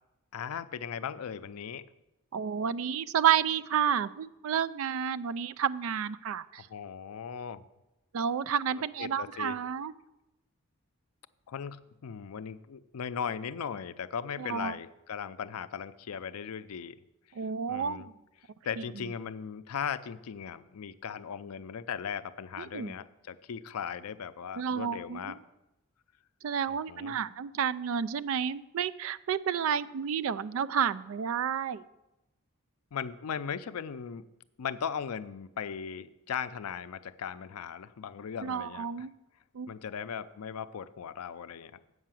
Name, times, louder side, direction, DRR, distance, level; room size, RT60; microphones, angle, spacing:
voice 1, 0.3-1.9 6.7-7.6 8.7-9.6 11.5-17.0 17.7-18.1 18.6-25.4 26.7-27.2 32.9-34.2 34.6-39.1 39.7-41.8, left 7 dB, 85° left, 13 dB, 0.4 m, -38 dB
voice 2, 2.3-6.7 8.1-9.9 14.4-14.8 17.4-18.1 22.7-22.9 24.6-25.3 26.4-31.8 38.4-39.1 39.5-39.7, right 8 dB, 65° right, 16 dB, 0.3 m, -30 dB
7.9 x 5.6 x 7.5 m, 0.94 s
head